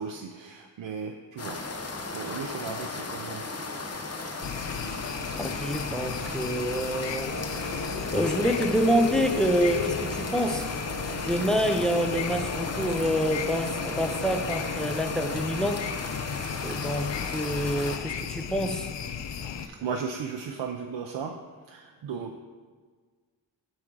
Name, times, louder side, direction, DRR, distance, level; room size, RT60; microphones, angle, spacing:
voice 1, 0.0-3.5 19.4-21.4 21.7-22.4, right 6 dB, 80° right, 3 dB, 0.6 m, -36 dB
sound 1, 1.4-18.0, left 3 dB, 35° left, 0.8 m, -36 dB
sound 2, 4.4-19.7, left 7 dB, 70° left, 0.6 m, -35 dB
voice 2, 5.4-7.4 8.1-10.7 11.2-15.9 16.6-18.9, equal, ahead, 6 dB, 0.5 m, -27 dB
Wind instrument woodwind instrument, 7.2-15.7, equal, 85° left, 1.9 m, -40 dB
8.4 x 3.8 x 4.6 m, 1.5 s
wide cardioid pair, 70°, 45 cm